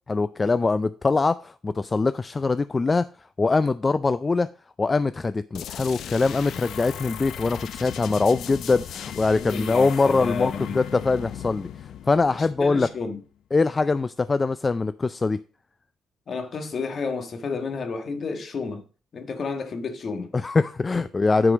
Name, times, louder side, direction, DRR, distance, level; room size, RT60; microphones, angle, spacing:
voice 1, 0.1-3.1 3.4-4.5 4.8-11.7 12.1-12.9 13.5-15.4 20.3-21.5, left 3 dB, 25° left, 0.4 m, -23 dB
sound 1, 5.5-13.1, left 9 dB, 75° left, 0.7 m, -37 dB
voice 2, 9.3-10.8 12.3-13.2 16.3-18.8 19.1-20.3, left 4 dB, 50° left, 1.6 m, -31 dB
9.8 x 4.8 x 5.0 m
cardioid pair, 90°, 0 cm